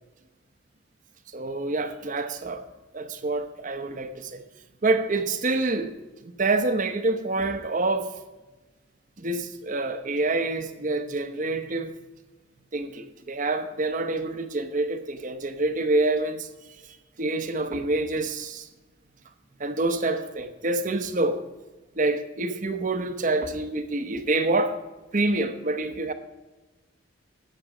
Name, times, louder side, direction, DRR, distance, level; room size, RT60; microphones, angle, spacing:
voice 1, 1.3-2.6 2.9-4.4 4.8-5.9 6.2-8.1 9.2-11.9 12.7-16.5 17.2-18.7 19.6-21.4 22.0-24.8 25.1-26.1, right 2 dB, 40° right, 0.9 m, -27 dB
12.0 x 8.2 x 5.0 m
head